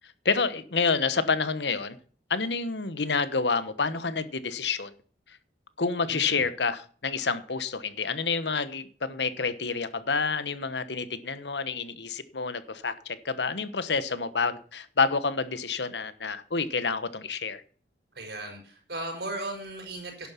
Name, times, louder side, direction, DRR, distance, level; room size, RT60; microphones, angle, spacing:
voice 1, 0.2-2.0 2.3-4.9 5.3-5.4 5.8-17.6, left 4 dB, 80° left, 14 dB, 1.2 m, -28 dB
voice 2, 6.1-6.4 18.1-20.3, right 2 dB, 70° right, 3 dB, 5.6 m, -36 dB
11.5 x 8.8 x 5.9 m, 0.44 s
head